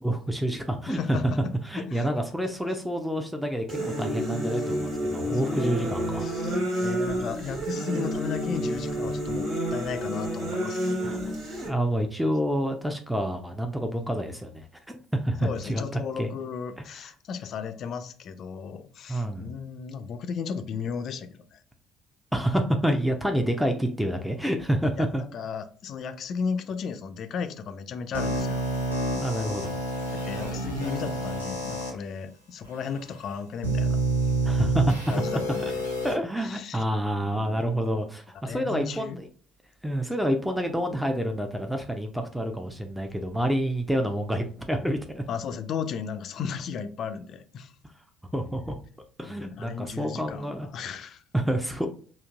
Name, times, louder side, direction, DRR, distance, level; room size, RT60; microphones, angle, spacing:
voice 1, 0.0-1.2 1.7-6.3 11.0-11.2 11.6-16.3 17.0-17.1 19.1-19.5 22.3-25.2 29.2-29.8 34.4-35.0 36.0-39.3 39.8-45.2 48.3-48.7 49.2-50.7 51.3-51.9, equal, 5° right, 0.6 m, -28 dB
voice 2, 0.9-1.5 1.9-2.1 5.5-11.2 15.4-21.6 25.0-28.6 30.1-34.0 35.1-35.8 36.4-36.8 37.2-37.7 38.4-39.2 45.3-47.7 49.2-51.2, left 6 dB, 50° left, 0.4 m, -35 dB
sound 1, 3.7-11.7, equal, 60° right, 1.5 m, -29 dB
sound 2, 28.1-31.9 32.6-32.7 33.6-36.1, right 2 dB, 90° right, 0.8 m, -28 dB
5.1 x 2.5 x 2.4 m
figure-of-eight pair, 50°, 0 cm